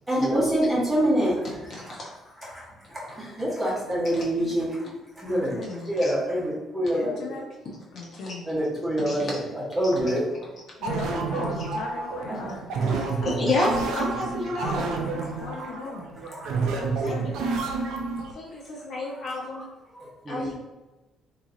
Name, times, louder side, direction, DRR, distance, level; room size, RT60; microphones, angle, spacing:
voice 1, 0.1-1.9 2.4-5.6 5.9-7.4 8.4-10.4 11.1-11.2 11.7-11.8 12.3-13.2 14.8-15.7 16.2-16.9 18.7-19.2 19.5-19.7 19.9-20.5, equal, 10° right, -6 dB, 1.1 m, -27 dB
voice 2, 5.2-5.9 6.9-7.4 7.9-8.5 10.8-13.6 15.4-16.0 16.7-17.3, left 3 dB, 70° left, 0 dB, 0.6 m, -38 dB
sound 1, 10.8-18.3, right 4 dB, 85° right, 0.6 m, -29 dB
voice 3, 13.2-14.8 17.0-17.3 18.3-19.6 20.3-20.5, left 2 dB, 40° left, -5 dB, 1.2 m, -29 dB
2.9 x 2.9 x 3.7 m, 1.1 s
cardioid pair, 150°, 0 cm